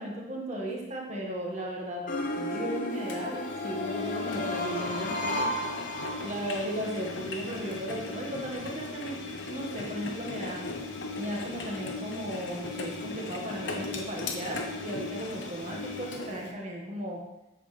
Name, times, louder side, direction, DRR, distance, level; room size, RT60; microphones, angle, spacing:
voice 1, 0.0-2.0 2.4-5.5 6.2-9.2 9.5-10.6 11.2-17.2, right 1 dB, 35° right, -2 dB, 1.6 m, -36 dB
sound 1, 2.1-6.7, left 1 dB, 40° left, 0.9 m, -33 dB
Engine, 3.1-16.5, left 3 dB, 65° left, 1.0 m, -37 dB
8.3 x 7.9 x 3.3 m, 0.94 s
head